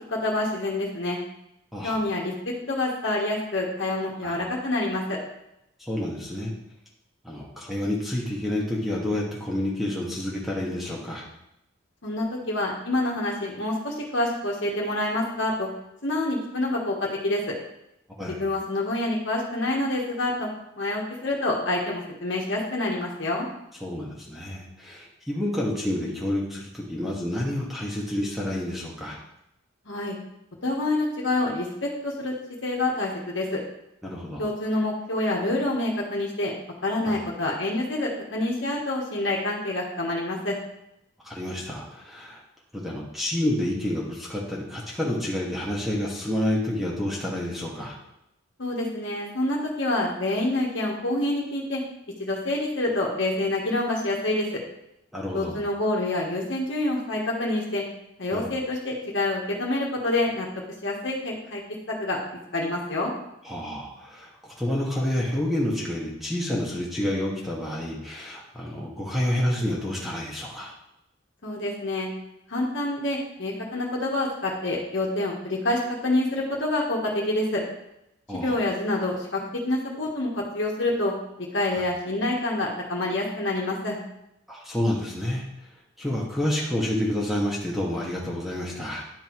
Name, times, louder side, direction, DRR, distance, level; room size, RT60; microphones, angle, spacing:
voice 1, 0.1-1.2 1.8-2.3 2.7-5.2 12.0-15.7 16.0-17.5 18.3-20.5 20.8-23.5 29.8-30.2 30.6-32.3 32.6-33.6 34.4-36.5 36.8-40.6 48.6-51.8 52.2-54.6 55.3-57.8 58.2-60.5 60.8-61.6 61.9-62.2 62.5-63.1 71.4-72.1 72.5-77.6 78.3-81.1 81.5-84.0, left 2 dB, 65° left, -2 dB, 1.5 m, -27 dB
voice 2, 1.7-2.0 4.2-4.4 5.8-6.5 7.2-11.3 18.2-18.4 23.8-29.2 34.0-34.4 37.0-37.2 41.2-42.4 42.7-48.0 55.1-55.5 58.3-58.5 63.4-70.7 78.3-78.6 81.7-81.8 84.5-85.4 86.0-89.0, left 1 dB, ahead, -4 dB, 1.5 m, -29 dB
10.5 x 4.6 x 4.7 m, 0.83 s
head